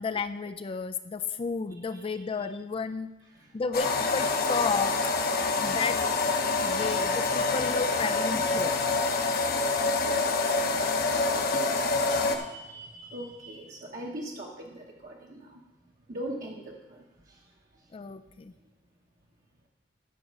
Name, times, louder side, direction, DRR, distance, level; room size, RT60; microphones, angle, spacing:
voice 1, 0.0-3.1 3.5-5.1 5.6-6.0 6.6-8.8 9.3-9.6 17.9-18.5, left 4 dB, 30° left, 12 dB, 0.3 m, -32 dB
voice 2, 1.9-2.2 3.3-3.6 5.4-5.8 12.1-15.6 16.1-17.4, right 1 dB, 50° right, -3 dB, 1.0 m, -41 dB
sound 1, 3.7-12.4, left 3 dB, 55° left, 0.9 m, -26 dB
11.5 x 5.1 x 6.4 m, 1.0 s
head